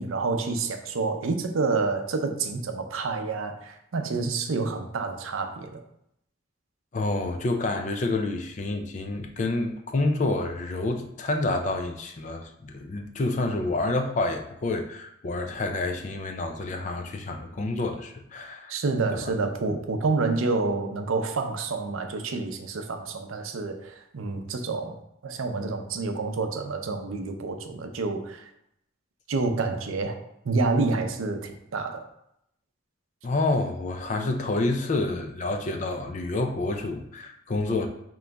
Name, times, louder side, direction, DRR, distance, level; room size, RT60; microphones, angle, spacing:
voice 1, 0.0-5.8 18.7-25.0 25.2-28.5 29.3-30.2 30.4-32.0, right 3 dB, 85° right, 6 dB, 0.5 m, -28 dB
voice 2, 6.9-18.8 19.1-19.2 33.2-37.9, left 2 dB, 35° left, 5 dB, 0.4 m, -28 dB
3.8 x 3.0 x 3.4 m, 0.78 s
head